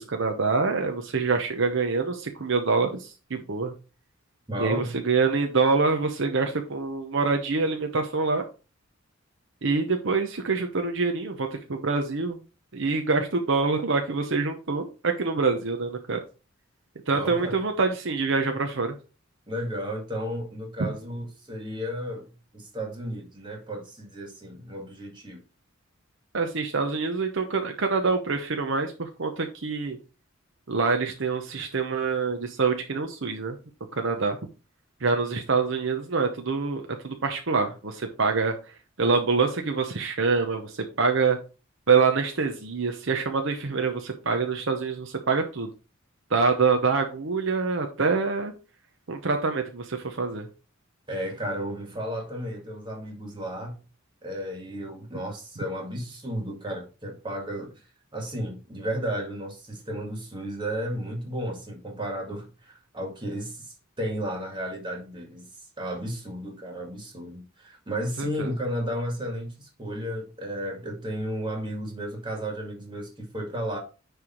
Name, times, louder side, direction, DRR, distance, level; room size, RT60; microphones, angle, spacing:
voice 1, 0.0-3.7 4.6-8.5 9.6-12.4 12.7-16.2 17.1-19.0 20.8-20.9 26.3-30.0 30.7-33.6 33.9-34.4 35.0-38.5 39.0-41.4 41.9-45.7 46.3-48.5 49.1-50.5 68.2-68.5, right 4 dB, 65° right, 0.9 m, -25 dB
voice 2, 4.5-4.9 17.1-17.6 19.5-25.4 51.1-53.8 54.2-57.8 58.1-65.5 65.8-73.8, equal, 25° right, 2.1 m, -33 dB
9.9 x 3.5 x 4.4 m
head